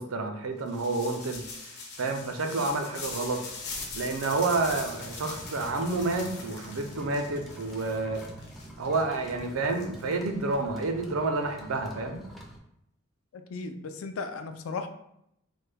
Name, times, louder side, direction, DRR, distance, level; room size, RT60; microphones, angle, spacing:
voice 1, 0.0-1.4 2.0-3.4 3.9-8.2 8.8-12.2, right 3 dB, 80° right, 5 dB, 0.5 m, -29 dB
sound 1, 0.7-10.5, left 4 dB, 55° left, 0.7 m, -42 dB
sound 2, 4.3-12.6, equal, ahead, 0.4 m, -46 dB
voice 2, 13.3-14.9, left 4 dB, 75° left, 8 dB, 0.4 m, -36 dB
3.3 x 2.2 x 3.3 m, 0.77 s
head